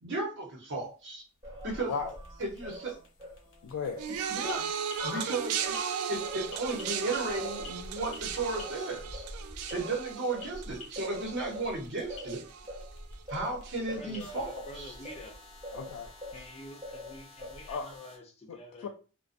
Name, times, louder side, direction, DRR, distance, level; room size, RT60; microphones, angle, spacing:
voice 1, 0.0-1.2 1.6-2.0 2.4-3.0 4.3-4.7 5.0-5.8 6.1-9.3 9.7-12.4 13.3-14.9, right 2 dB, 55° right, 0.8 m, -34 dB
sound 1, 0.8-18.2, left 3 dB, 65° left, 0.8 m, -51 dB
Singing, 1.4-5.8 6.2-16.5 16.8-17.8, left 1 dB, 15° right, 1.0 m, -45 dB
voice 2, 1.8-2.2 3.6-4.3 15.7-16.1 17.7-18.0 18.5-18.6 18.8-18.9, left 5 dB, 90° left, 0.3 m, -36 dB
sound 2, 4.0-13.3 13.6-14.2 15.0-15.1, right 7 dB, 80° right, 0.3 m, -37 dB
voice 3, 13.9-15.4 16.3-18.9, left 1 dB, 30° left, 0.4 m, -47 dB
2.5 x 2.2 x 2.4 m
head